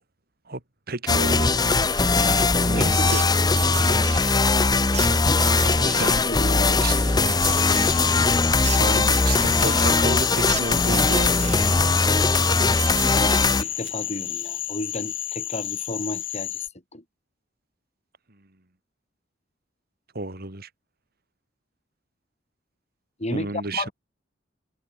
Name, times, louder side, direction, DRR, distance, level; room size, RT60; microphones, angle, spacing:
voice 1, 0.9-2.3 2.7-3.3 6.0-6.2 6.8-7.0 8.8-12.1 20.1-20.7 23.3-23.9, right 2 dB, 55° right, 2.7 m, -32 dB
sound 1, 1.1-13.6, left 3 dB, 20° left, 0.9 m, -20 dB
sound 2, 2.2-14.3, right 6 dB, 40° right, 3.9 m, -36 dB
voice 2, 2.8-3.1 5.8-6.8 13.1-16.7 16.9-17.0 23.2-23.9, left 1 dB, 35° left, 5.7 m, -33 dB
Cricket / Frog, 7.4-16.7, left 12 dB, 85° left, 7.6 m, -32 dB
head